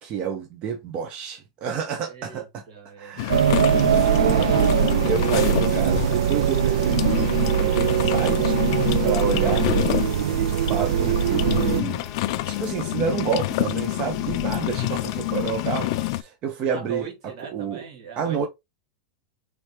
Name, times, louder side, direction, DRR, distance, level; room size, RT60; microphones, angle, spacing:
voice 1, 0.0-2.6 3.0-3.5 4.2-8.6 9.0-9.7 10.4-12.0 12.4-17.1 17.5-17.8 18.2-18.5, right 6 dB, 35° right, 0.7 m, -29 dB
voice 2, 2.1-3.4 14.5-14.7 16.7-18.5, right 6 dB, 70° right, 2.3 m, -40 dB
sound 1, 3.2-16.2, left 17 dB, 60° left, 0.4 m, -27 dB
sound 2, 3.3-11.8, right 9 dB, 90° right, 0.4 m, -21 dB
sound 3, 7.1-16.1, left 5 dB, 15° left, 0.7 m, -44 dB
5.0 x 3.2 x 3.1 m
supercardioid pair, 150°, 3 cm